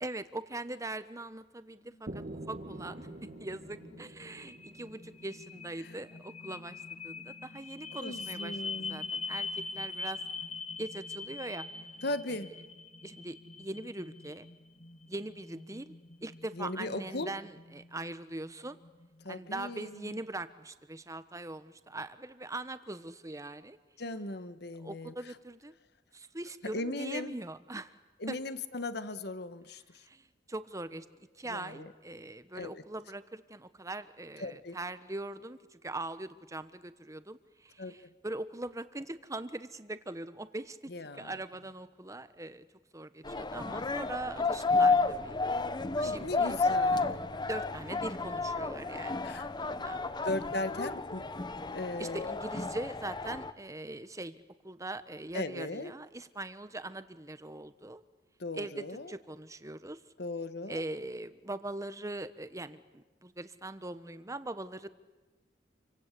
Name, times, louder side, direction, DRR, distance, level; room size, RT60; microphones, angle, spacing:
voice 1, 0.0-3.1 3.4-8.5 8.9-10.2 10.8-11.9 12.3-12.4 13.0-14.5 15.1-15.9 16.2-18.8 19.3-23.8 24.8-25.7 26.1-27.9 28.3-28.4 30.0-31.1 31.4-38.0 38.2-42.7 42.9-45.4 46.0-46.6 47.5-50.0 52.0-58.0 58.5-60.0 60.7-64.9, right 2 dB, 20° right, 12 dB, 1.2 m, -41 dB
sound 1, 1.8-19.9, left 4 dB, 40° left, 1.3 m, -44 dB
sound 2, 2.1-6.0, right 1 dB, 45° right, 1.2 m, -46 dB
voice 2, 8.0-9.1 12.0-12.5 16.5-17.3 19.2-20.2 24.0-25.1 26.7-27.4 28.2-30.1 31.5-31.9 32.5-32.8 34.4-34.8 37.8-37.9 40.9-41.4 45.9-47.3 49.2-49.5 50.2-52.3 55.3-55.9 58.4-59.1 60.2-60.8, left 2 dB, 65° left, 12 dB, 1.5 m, -38 dB
sound 3, 43.2-53.5, left 3 dB, 25° left, 0.9 m, -31 dB
27.5 x 25.0 x 8.4 m, 1.2 s
head